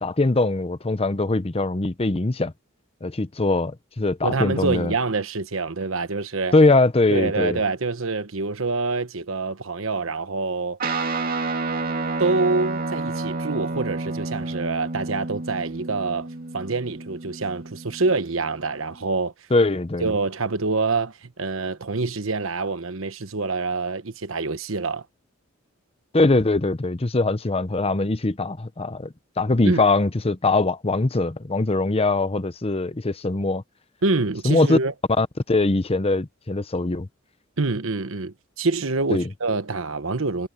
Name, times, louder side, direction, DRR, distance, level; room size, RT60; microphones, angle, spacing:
voice 1, 0.0-2.5 3.0-4.9 6.5-7.6 19.5-20.1 26.1-33.6 34.4-34.8 35.2-37.1 39.1-39.3, left 2 dB, 30° left, 0.8 m, -22 dB
voice 2, 4.2-6.5 7.1-10.8 12.2-16.3 16.5-19.3 20.0-25.0 29.6-29.8 34.0-34.9 37.6-40.5, right 3 dB, 70° right, 1.2 m, -26 dB
Guitar, 10.8-18.4, right 3 dB, 45° right, 2.3 m, -30 dB
head